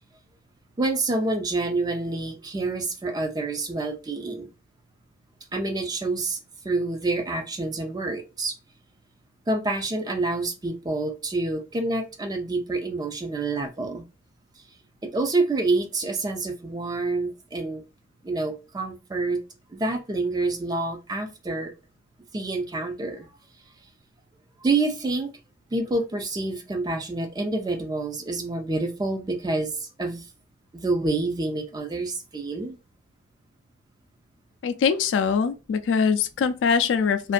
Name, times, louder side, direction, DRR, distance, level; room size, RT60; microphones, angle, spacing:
voice 1, 0.8-4.5 5.5-6.4 6.6-8.5 9.5-14.1 15.0-17.8 18.2-19.4 19.7-21.7 22.3-23.3 24.6-25.3 25.7-30.3 30.7-32.8, right 2 dB, 20° right, 0.4 m, -27 dB
voice 2, 34.6-37.3, left 6 dB, 75° left, 0.3 m, -23 dB
2.5 x 2.2 x 2.4 m
head